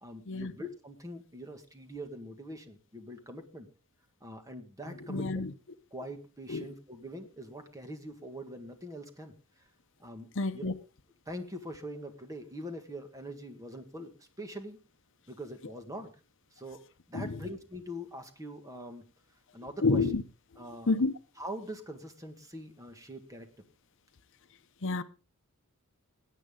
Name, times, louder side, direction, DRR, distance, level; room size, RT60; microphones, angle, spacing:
voice 1, 0.0-3.7 4.2-5.5 5.9-9.7 10.0-10.7 11.3-14.8 15.3-16.1 16.5-16.8 17.1-19.1 19.5-20.0 20.6-20.9 21.4-23.5, equal, 15° right, 1.8 m, -43 dB
voice 2, 5.1-5.5 6.5-6.6 10.4-10.7 17.1-17.4 19.8-20.2 20.9-21.1 24.8-25.0, left 3 dB, 60° left, 0.8 m, -28 dB
21.0 x 9.2 x 3.8 m
head